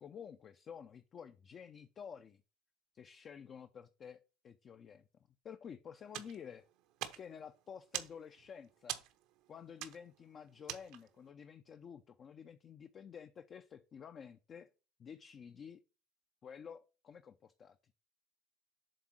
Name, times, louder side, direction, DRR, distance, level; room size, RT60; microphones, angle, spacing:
voice 1, 0.0-2.4 2.9-4.2 4.4-5.1 5.4-6.6 7.1-9.0 9.5-14.7 15.0-15.8 16.4-17.8, left 7 dB, 40° left, 0.6 m, -51 dB
sound 1, 6.1-11.3, right 12 dB, 70° right, 0.9 m, -46 dB
7.7 x 3.5 x 6.2 m
supercardioid pair, 105°, 0 cm